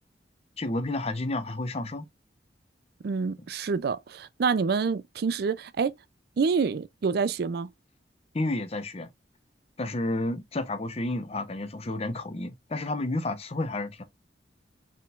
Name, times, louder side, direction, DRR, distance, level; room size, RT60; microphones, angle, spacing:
voice 1, 0.6-2.1 8.3-9.1 9.8-14.0, left 2 dB, 35° left, 0.7 m, -31 dB
voice 2, 3.0-5.9 6.4-7.7, right 5 dB, 60° right, 0.4 m, -27 dB
4.3 x 3.7 x 2.4 m
head